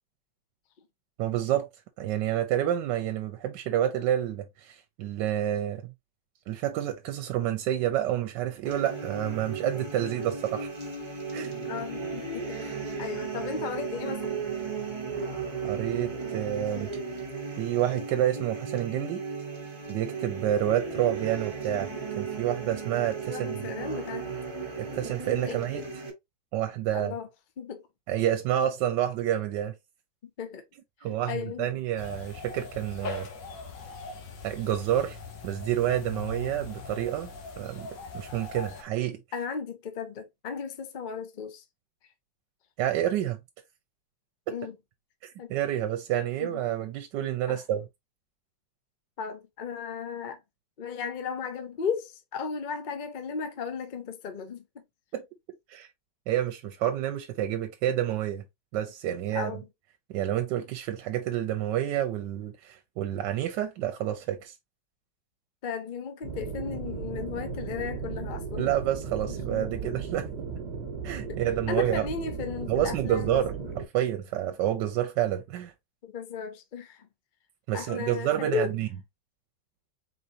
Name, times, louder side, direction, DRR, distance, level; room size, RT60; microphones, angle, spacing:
voice 1, 1.2-1.7 2.0-5.9 6.5-10.7 11.3-11.5 15.6-16.9 17.6-19.2 19.9-23.5 24.8-25.8 26.5-27.1 28.1-29.7 31.0-33.3 34.4-35.2 35.4-37.3 37.6-37.9 38.1-39.2 42.8-43.4 44.5-44.6 45.2-47.8 55.1-55.2 55.7-55.9 56.3-58.4 58.7-59.5 60.1-64.6 68.6-70.5 71.0-72.0 72.7-75.7 77.7-78.9, right 11 dB, 90° right, 1.3 m, -29 dB
sound 1, 8.6-26.1, right 5 dB, 20° right, 1.1 m, -35 dB
voice 2, 11.7-14.4 23.3-24.5 25.5-25.6 26.9-27.3 27.6-27.9 30.4-30.6 31.0-31.9 39.3-41.6 42.0-42.1 44.5-44.8 45.4-45.5 46.4-46.6 47.5-47.6 49.2-50.4 50.8-54.8 59.3-59.7 65.6-68.8 69.5-70.0 71.3-71.4 71.7-73.7 76.0-77.1 77.7-78.8, left 6 dB, 50° left, 0.6 m, -35 dB
sound 2, 32.0-38.8, left 4 dB, 80° left, 1.7 m, -40 dB
sound 3, 66.2-73.9, right 5 dB, 65° right, 1.6 m, -36 dB
4.1 x 3.8 x 2.7 m
omnidirectional pair, 1.9 m